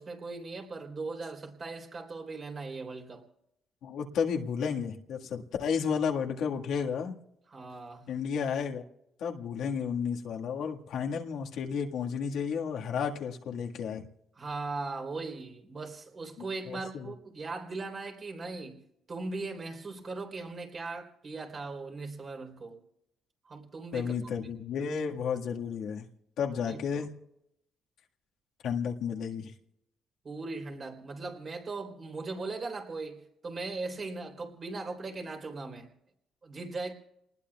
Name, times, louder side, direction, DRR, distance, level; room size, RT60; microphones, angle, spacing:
voice 1, 0.0-3.2 7.5-8.1 14.4-18.8 19.1-22.8 23.5-24.1 26.7-27.1 30.2-35.9 36.4-36.9, right 3 dB, 40° right, 3 dB, 3.6 m, -39 dB
voice 2, 3.8-7.1 8.1-8.8 9.2-14.1 16.7-17.1 23.9-26.1 26.4-27.1 28.6-29.5, left 6 dB, 80° left, 1 dB, 1.7 m, -32 dB
29.5 x 20.0 x 2.4 m, 0.81 s
cardioid pair, 90°, 0 cm